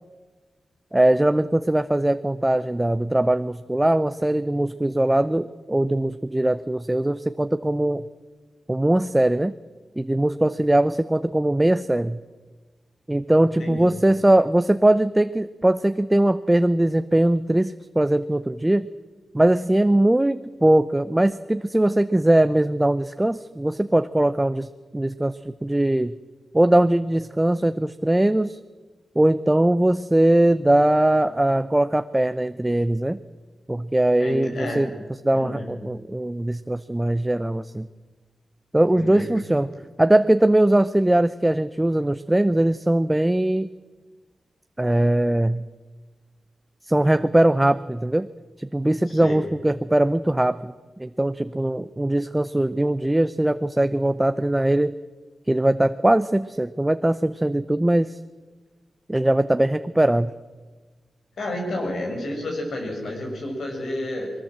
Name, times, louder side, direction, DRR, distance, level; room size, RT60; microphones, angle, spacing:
voice 1, 0.9-8.0 8.7-9.5 10.0-12.2 13.1-18.9 19.3-24.7 24.9-26.1 26.5-28.6 29.2-33.2 33.7-34.9 35.2-37.9 38.7-39.7 40.0-43.7 44.8-45.6 46.9-48.3 48.6-50.7 51.0-54.9 55.5-58.2 59.1-60.3, right 1 dB, 15° right, 12 dB, 0.6 m, -20 dB
voice 2, 13.6-14.0 34.2-34.9 35.3-35.7 38.9-39.2 49.1-49.4 61.4-64.3, left 1 dB, 75° left, 2 dB, 6.1 m, -30 dB
21.5 x 18.0 x 7.5 m, 1.3 s
cardioid pair, 85°, 0 cm